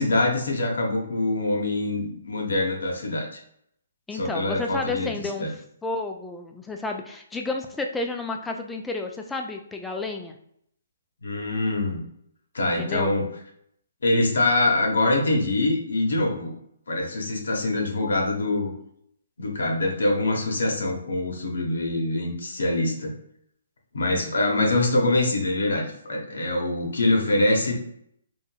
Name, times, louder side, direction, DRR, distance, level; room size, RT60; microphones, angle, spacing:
voice 1, 0.0-3.4 4.1-5.5 11.2-12.0 12.5-13.3 14.0-16.5 16.9-18.7 19.4-23.1 23.9-27.7, left 2 dB, 70° left, 1 dB, 0.8 m, -24 dB
voice 2, 4.1-5.5 5.8-10.4 12.7-13.1, left 3 dB, 10° left, 3 dB, 0.4 m, -31 dB
3.0 x 2.6 x 2.2 m, 0.71 s
figure-of-eight pair, 135°, 0 cm